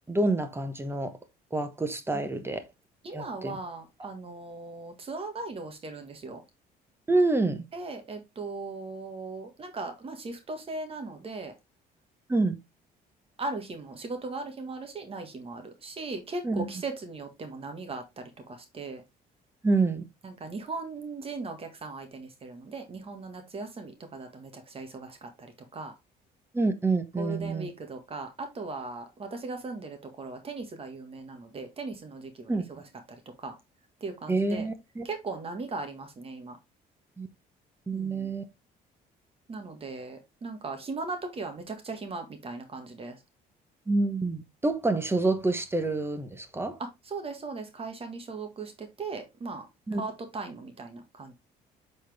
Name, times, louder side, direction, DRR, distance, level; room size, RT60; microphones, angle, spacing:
voice 1, 0.1-1.2 1.5-2.6 3.1-3.6 7.1-7.6 12.3-12.6 16.4-16.7 19.6-20.0 26.5-27.7 32.5-32.7 34.3-35.1 37.2-37.3 37.9-38.4 43.9-46.8 49.9-50.0, right 3 dB, 15° right, 1.1 m, -27 dB
voice 2, 3.0-6.4 7.7-11.5 13.4-19.0 20.2-25.9 27.2-33.6 34.0-34.7 35.0-36.6 37.9-38.3 39.5-43.2 46.8-49.7 49.9-51.3, right 3 dB, 35° right, 1.7 m, -38 dB
7.3 x 4.3 x 3.4 m
cardioid pair, 110°, 17 cm